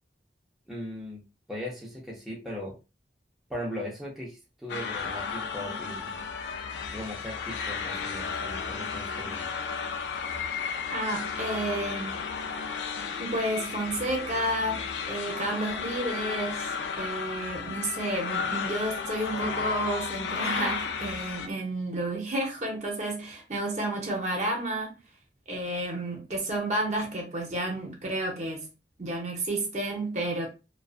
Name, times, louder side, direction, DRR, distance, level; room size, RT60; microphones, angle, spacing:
voice 1, 0.7-1.2 1.5-2.7 3.5-6.2 6.9-9.5, left 1 dB, ahead, 0.5 m, -38 dB
sound 1, 4.7-21.5, left 5 dB, 80° left, 0.4 m, -34 dB
voice 2, 10.9-12.2 13.2-16.7 17.0-25.0 25.5-28.7 29.0-30.5, right 1 dB, 40° right, 0.7 m, -31 dB
2.5 x 2.3 x 2.4 m
head